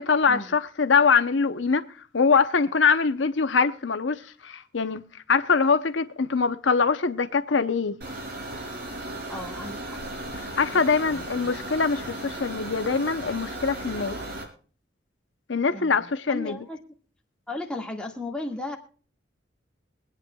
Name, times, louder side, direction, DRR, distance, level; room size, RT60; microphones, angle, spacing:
voice 1, 0.0-1.8 2.1-8.0 10.5-14.2 15.5-16.6, left 5 dB, 90° left, 0.8 m, -23 dB
sound 1, 8.0-14.4, right 1 dB, 60° right, 3.9 m, -36 dB
voice 2, 9.3-10.0 10.6-10.8 11.1-11.5 15.7-16.8 17.5-18.8, left 2 dB, 5° left, 1.8 m, -36 dB
23.5 x 9.2 x 2.3 m
head